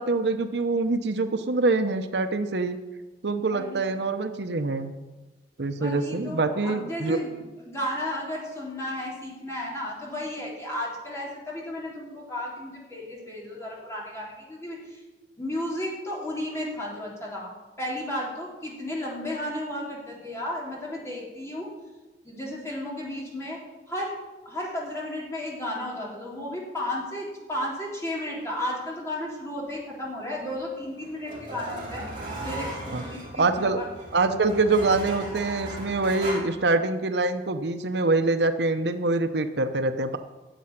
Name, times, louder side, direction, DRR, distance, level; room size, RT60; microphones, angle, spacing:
voice 1, 0.0-2.8 3.2-4.9 5.6-7.2 32.9-33.0 33.4-33.8 34.1-40.2, right 3 dB, 75° right, 9 dB, 0.8 m, -25 dB
voice 2, 3.5-3.8 5.8-15.0 15.4-17.5 17.8-21.7 22.2-23.6 23.9-24.2 24.4-32.0 32.4-33.8, left 1 dB, 15° left, -4 dB, 3.3 m, -33 dB
sound 1, 30.5-36.4, right 1 dB, 30° right, 3.4 m, -37 dB
10.0 x 7.5 x 9.4 m, 1.1 s
head